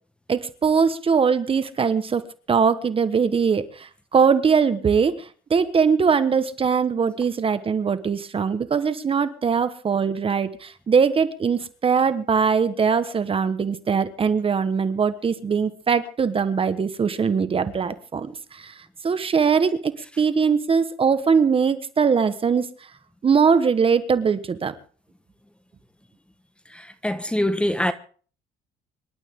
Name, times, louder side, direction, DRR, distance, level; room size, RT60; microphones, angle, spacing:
voice 1, 0.3-2.2 2.5-18.7 19.0-22.7 23.2-24.7, right 6 dB, 35° right, 1.3 m, -21 dB
voice 2, 26.6-27.9, left 1 dB, 5° left, 1.4 m, -25 dB
26.0 x 12.0 x 3.8 m
cardioid pair, 110°, 17 cm